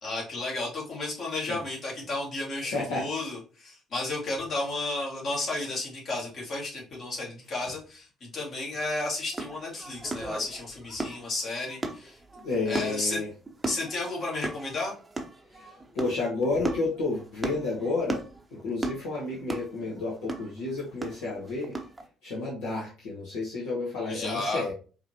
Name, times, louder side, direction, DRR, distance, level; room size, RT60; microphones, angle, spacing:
voice 1, 0.0-12.2 12.7-13.2 13.7-14.9 24.0-24.6, left 2 dB, 45° left, -2 dB, 1.9 m, -33 dB
voice 2, 2.7-3.1 12.4-13.3 15.5-18.2 18.5-21.7 22.2-24.7, left 3 dB, 65° left, -5 dB, 1.1 m, -31 dB
sound 1, 9.3-22.0, right 2 dB, 20° right, 0.8 m, -37 dB
4.7 x 3.0 x 2.9 m, 0.36 s
figure-of-eight pair, 50°, 0 cm